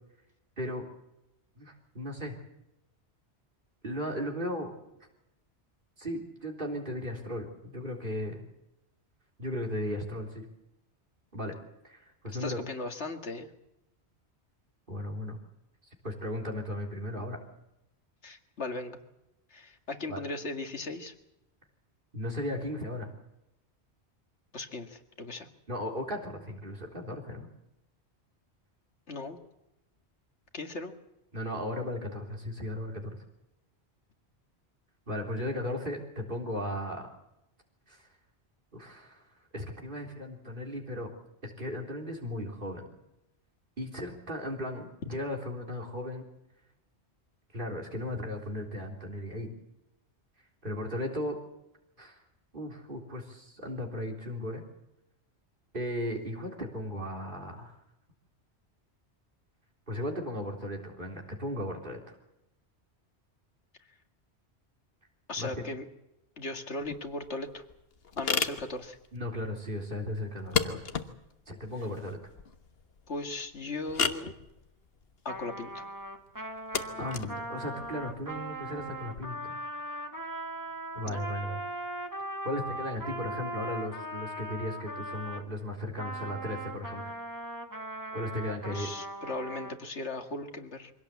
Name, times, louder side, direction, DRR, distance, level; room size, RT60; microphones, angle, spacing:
voice 1, 1.6-2.3 3.8-4.7 6.0-8.5 9.4-10.4 11.3-11.5 11.8-12.6 14.9-15.4 16.0-17.4 20.1-20.2 22.1-23.1 25.7-27.5 31.3-33.2 35.1-37.1 37.9-38.0 38.7-39.2 39.5-41.1 41.4-42.8 43.8-46.2 47.5-49.5 50.6-51.4 52.0-52.2 52.5-54.6 55.7-57.7 59.9-62.2 65.4-65.7 69.1-70.8 71.5-72.2 77.0-79.6 80.9-81.6 82.4-87.0 88.1-88.9, left 1 dB, 50° right, 1 dB, 3.9 m, -36 dB
voice 2, 12.3-13.5 18.2-19.0 19.5-21.1 24.5-25.5 29.1-29.4 30.5-30.9 65.3-65.8 66.4-67.6 68.2-69.0 73.1-74.3 75.2-75.9 81.0-81.2 88.7-90.9, left 2 dB, 90° left, 5 dB, 2.3 m, -37 dB
sound 1, 66.8-79.2, left 6 dB, 60° left, 1.5 m, -36 dB
Trumpet, 75.3-85.5 86.0-89.8, right 1 dB, 15° right, 1.9 m, -39 dB
24.0 x 17.5 x 8.3 m, 0.89 s
omnidirectional pair, 1.1 m